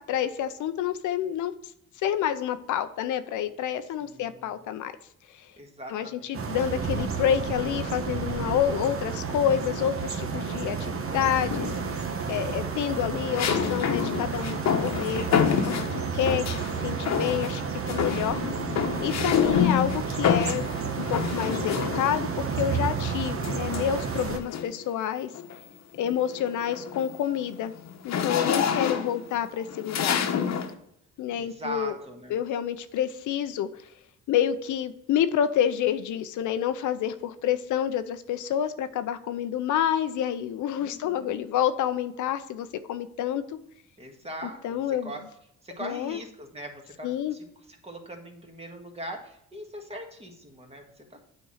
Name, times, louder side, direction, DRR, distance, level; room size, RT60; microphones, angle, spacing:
voice 1, 0.0-1.5 2.0-4.9 5.9-11.7 12.3-15.9 16.1-16.4 16.8-17.6 17.9-18.4 19.0-20.7 21.0-25.3 26.0-27.7 28.0-30.2 31.2-31.9 32.3-33.7 34.3-43.6 44.6-45.1 45.8-46.2 47.0-47.4, left 10 dB, 80° left, 10 dB, 0.7 m, -28 dB
voice 2, 4.0-4.6 5.6-6.5 28.3-28.9 31.3-32.4 40.8-41.4 44.0-45.2 45.6-51.2, right 1 dB, 20° right, 2 dB, 1.8 m, -41 dB
sound 1, 6.3-24.4, right 5 dB, 45° right, 1.1 m, -31 dB
sound 2, 11.5-12.0 13.4-16.7 17.1-17.6 17.9-22.3 23.4-24.8 25.3-25.6 26.0-30.7, left 7 dB, 60° left, 1.1 m, -28 dB
8.8 x 4.4 x 6.3 m, 0.75 s
cardioid pair, 90°, 30 cm